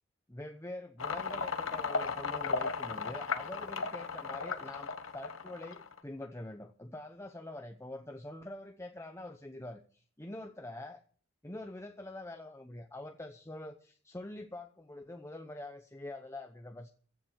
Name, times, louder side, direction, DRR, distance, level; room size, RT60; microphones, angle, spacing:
voice 1, 0.3-11.0 11.4-16.9, left 1 dB, 15° left, 6 dB, 0.9 m, -45 dB
sound 1, 1.0-6.0, left 4 dB, 75° left, 1.3 m, -36 dB
15.5 x 7.5 x 8.0 m, 0.43 s
head